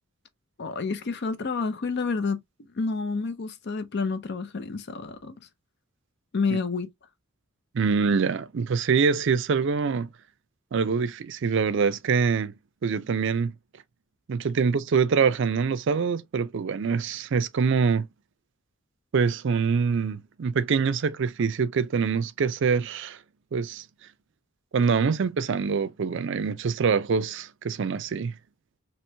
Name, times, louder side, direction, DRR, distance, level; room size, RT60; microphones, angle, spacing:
voice 1, 0.6-2.4 2.7-5.4 6.3-6.9, left 4 dB, 55° left, 0.6 m, -29 dB
voice 2, 7.7-10.1 10.7-12.5 12.8-13.5 14.3-18.1 19.1-23.2 23.5-23.8 24.7-28.3, right 5 dB, 60° right, 0.4 m, -25 dB
3.0 x 3.0 x 3.2 m
head